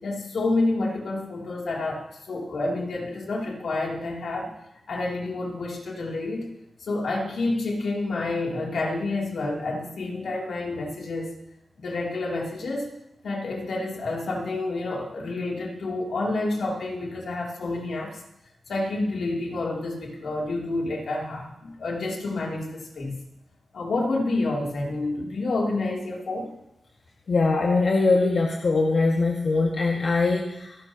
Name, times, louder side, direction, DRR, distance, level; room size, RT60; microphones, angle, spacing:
voice 1, 0.0-4.5 4.9-6.5 6.8-11.3 11.8-12.9 13.2-18.2 18.7-23.2 23.7-26.5, left 2 dB, 85° left, -2 dB, 2.9 m, -29 dB
voice 2, 27.3-30.8, left 3 dB, 65° left, -2 dB, 1.8 m, -22 dB
27.5 x 11.5 x 2.9 m, 0.88 s
wide cardioid pair, 105°, 0 cm